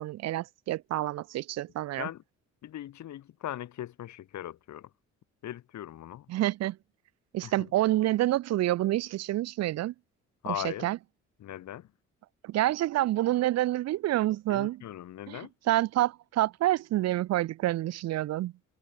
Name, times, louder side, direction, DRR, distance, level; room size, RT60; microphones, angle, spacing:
voice 1, 0.0-2.1 6.3-6.8 7.3-9.9 10.4-11.0 12.4-14.8 15.3-18.5, right 15 dB, 60° right, 0.4 m, -28 dB
voice 2, 2.6-4.9 5.4-6.3 7.4-7.5 10.4-10.9 11.4-11.9 14.5-15.5, left 12 dB, 70° left, 1.8 m, -39 dB
cardioid pair, 90°, 30 cm